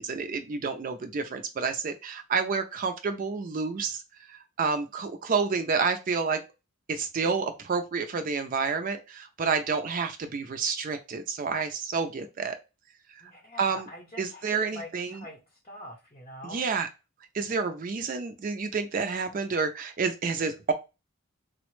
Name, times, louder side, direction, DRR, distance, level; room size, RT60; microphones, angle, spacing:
voice 1, 0.0-4.0 4.6-6.4 6.9-12.5 13.6-13.9 14.2-15.2 16.4-16.9 17.3-20.7, right 5 dB, 40° right, 7 dB, 0.3 m, -29 dB
voice 2, 13.2-16.7, left 1 dB, 25° left, 0 dB, 0.6 m, -45 dB
4.0 x 2.0 x 3.0 m, 0.28 s
head